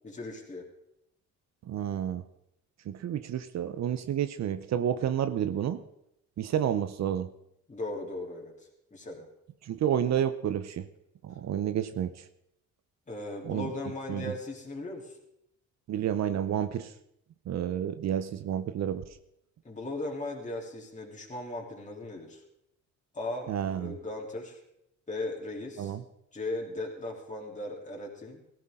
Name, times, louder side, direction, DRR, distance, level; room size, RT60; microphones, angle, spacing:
voice 1, 0.0-0.6 7.7-8.5 8.9-9.3 13.1-15.2 19.6-22.4 23.1-24.6 25.1-26.0 26.3-28.4, left 2 dB, 25° left, -1 dB, 3.2 m, -37 dB
voice 2, 1.7-2.2 2.9-5.8 6.4-7.3 9.6-10.9 11.2-12.2 13.4-13.7 14.1-14.3 15.9-16.9 17.5-19.0 23.5-24.0 25.8-26.0, right 9 dB, 60° right, 11 dB, 0.8 m, -30 dB
17.0 x 13.5 x 3.8 m, 0.79 s
cardioid pair, 90°, 30 cm